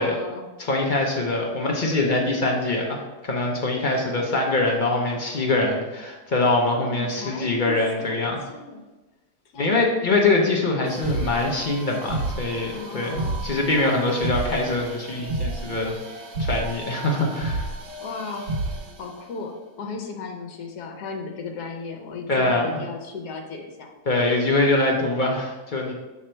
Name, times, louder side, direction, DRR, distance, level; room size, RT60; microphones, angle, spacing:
voice 1, 0.0-0.5 6.7-8.8 9.5-9.9 12.7-13.5 18.0-18.5 19.0-23.9, left 4 dB, 70° left, 2 dB, 1.3 m, -36 dB
voice 2, 0.6-8.4 9.6-15.9 16.4-17.7 22.3-22.8 24.1-25.9, left 2 dB, 45° left, 0 dB, 0.6 m, -23 dB
sound 1, 10.8-19.1, right 2 dB, 85° right, 1.5 m, -31 dB
6.4 x 3.5 x 4.4 m, 1.1 s
omnidirectional pair, 1.8 m